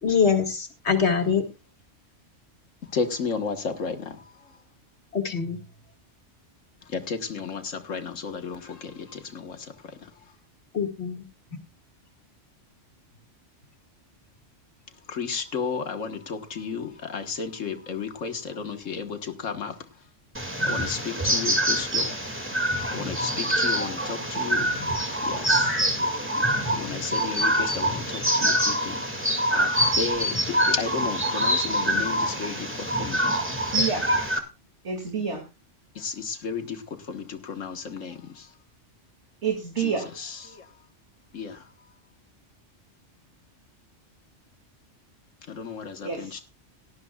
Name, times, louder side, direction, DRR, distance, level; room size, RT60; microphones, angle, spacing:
voice 1, 0.0-1.4 5.1-5.6 10.7-11.2 32.0-32.1, left 6 dB, 60° left, 5 dB, 2.2 m, -24 dB
voice 2, 2.9-4.2 6.9-9.6 15.1-19.7 20.6-22.1 22.9-24.7 25.2-25.8 26.7-28.9 29.5-33.2 36.0-36.8 37.1-38.5 39.8-40.6 41.3-41.6 45.5-46.4, left 5 dB, 85° left, 7 dB, 1.7 m, -33 dB
sound 1, 20.3-34.4, right 1 dB, 10° right, 2.2 m, -25 dB
voice 3, 33.7-34.1 34.8-35.4 39.4-40.1 46.0-46.4, right 6 dB, 65° right, 2 dB, 2.8 m, -28 dB
18.0 x 12.5 x 2.4 m, 0.28 s
omnidirectional pair, 1.3 m